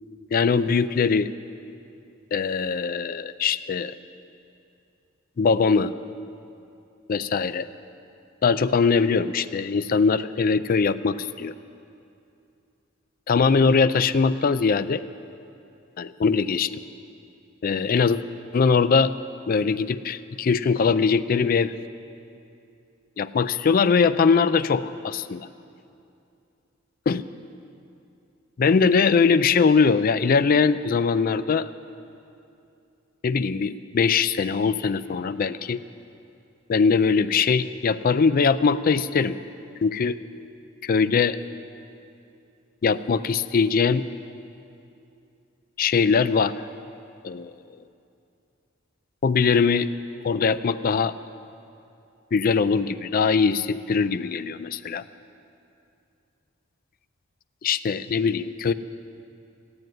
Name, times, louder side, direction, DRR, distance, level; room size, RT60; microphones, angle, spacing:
voice 1, 0.3-1.3 2.3-3.9 5.4-5.9 7.1-7.7 8.4-11.5 13.3-15.0 16.0-16.7 17.6-18.2 18.5-19.1 19.5-21.7 23.2-25.5 27.1-27.2 28.6-31.7 33.2-35.8 36.7-39.4 39.8-40.2 40.8-41.4 42.8-44.0 45.8-46.5 47.2-47.5 49.2-49.9 50.2-51.1 52.3-55.0 57.6-58.7, left 5 dB, 45° left, 12 dB, 0.4 m, -21 dB
14.0 x 9.8 x 9.2 m, 2.6 s
head